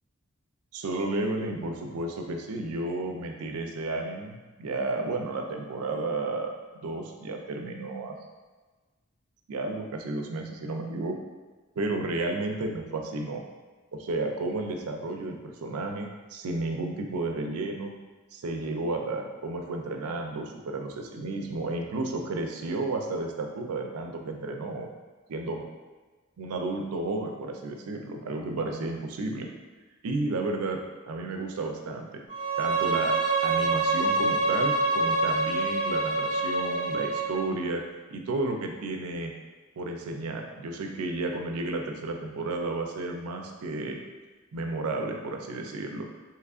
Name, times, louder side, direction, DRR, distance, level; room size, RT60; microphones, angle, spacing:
voice 1, 0.7-8.2 9.5-11.2 11.8-13.4 13.9-17.9 18.3-24.9 25.3-25.6 26.4-29.5 30.0-30.8 31.1-32.1 32.6-33.1 33.4-37.8 38.1-39.3 39.8-44.0 44.5-46.1, right 2 dB, 75° right, 3 dB, 0.4 m, -32 dB
Bowed string instrument, 32.3-37.4, right 3 dB, 55° left, 1.3 m, -26 dB
3.5 x 3.0 x 2.4 m, 1.3 s
head